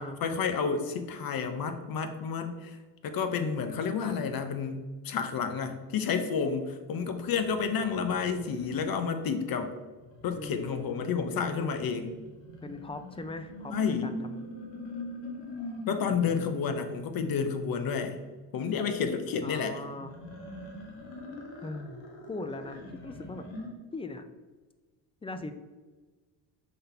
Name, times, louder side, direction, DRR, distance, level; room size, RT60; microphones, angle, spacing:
voice 1, 0.2-2.8 3.0-9.7 10.2-12.2 13.7-14.2 15.9-18.2 18.5-19.7, left 6 dB, 55° left, 8 dB, 0.8 m, -30 dB
sound 1, 7.3-8.9 10.0-16.8 19.9-23.7, left 1 dB, 85° left, 1.4 m, -43 dB
voice 2, 10.3-11.4 12.6-14.4 16.0-16.6 19.4-20.1 21.6-22.0 22.3-23.4 23.9-24.3 25.2-25.5, left 2 dB, 15° left, 9 dB, 0.4 m, -40 dB
5.4 x 4.0 x 4.4 m, 1.3 s
cardioid pair, 100°, 43 cm